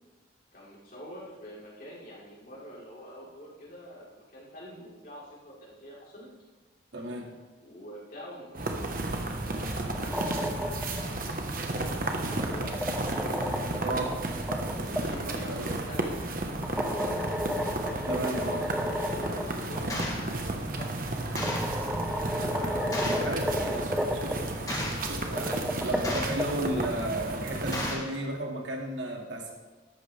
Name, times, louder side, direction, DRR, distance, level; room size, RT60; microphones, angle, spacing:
voice 1, 0.5-6.3 7.6-13.4 14.5-17.8 18.6-21.4 22.0-24.9 25.8-26.2, equal, 50° left, -6 dB, 4.1 m, -46 dB
voice 2, 6.9-7.3 13.8-14.2 15.3-15.6 18.1-18.7 23.2-23.9 24.2-24.4 25.1-29.5, right 1 dB, 80° right, 0 dB, 2.3 m, -33 dB
sound 1, 8.6-27.9, right 2 dB, 50° right, 1.3 m, -33 dB
sound 2, 9.9-11.0 12.2-15.0 16.6-19.4 19.7-19.8 20.9-21.0 21.4-24.3 25.2-26.9, equal, 5° right, 0.8 m, -32 dB
Gunshot gunfire, 19.9-20.2 21.4-21.8 22.9-23.3 24.7-25.1 26.0-26.5 27.7-28.1, left 1 dB, 20° left, 1.8 m, -33 dB
14.0 x 12.0 x 3.5 m, 1.3 s
head